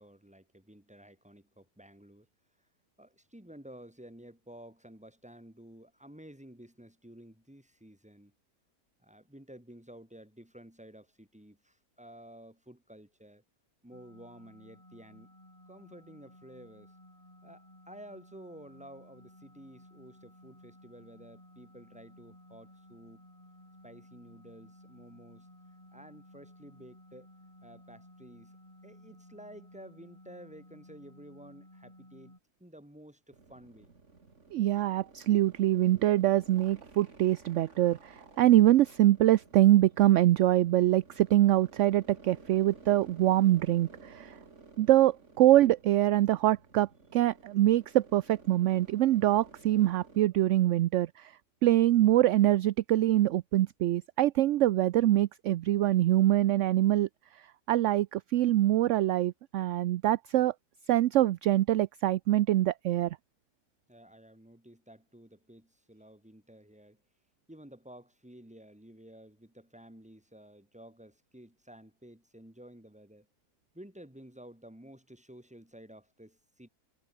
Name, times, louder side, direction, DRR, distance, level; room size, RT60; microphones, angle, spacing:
voice 1, 0.0-2.3 3.0-8.3 9.0-13.4 13.8-15.3 15.7-16.9 17.4-23.2 23.8-25.5 25.9-27.3 27.6-28.6 28.8-32.3 32.6-33.9 63.9-67.0 67.5-73.3 73.7-76.7, right 1 dB, 5° right, 3.0 m, -52 dB
sound 1, 13.9-32.4, left 1 dB, 20° left, 6.0 m, -56 dB
sound 2, 33.3-50.2, right 4 dB, 50° right, 2.9 m, -55 dB
voice 2, 34.5-44.4 44.8-51.3 51.6-57.1 57.7-60.5 60.9-63.2, right 14 dB, 70° right, 0.7 m, -24 dB
omnidirectional pair, 1.7 m